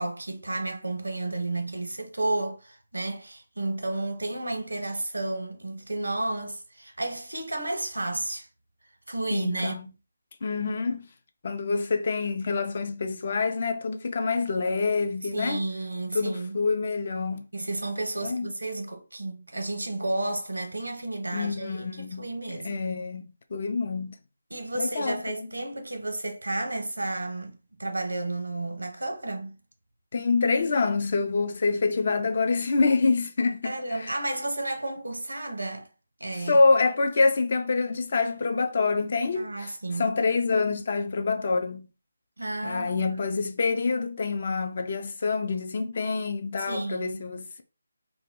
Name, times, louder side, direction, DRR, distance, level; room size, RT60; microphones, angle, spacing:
voice 1, 0.0-8.5 9.1-9.8 15.3-16.6 17.5-22.9 24.5-29.6 33.6-35.9 36.2-36.6 39.3-40.1 42.4-43.2 46.6-47.2, right 2 dB, 85° right, 0.7 m, -32 dB
voice 2, 9.3-9.9 10.4-11.1 11.4-15.6 16.1-17.5 18.2-18.5 21.3-22.3 22.6-23.2 23.5-24.2 24.7-25.5 30.1-34.2 36.5-39.7 40.0-41.9 42.6-47.6, left 4 dB, 50° left, 0.4 m, -26 dB
2.2 x 2.0 x 3.4 m
figure-of-eight pair, 155°, 0 cm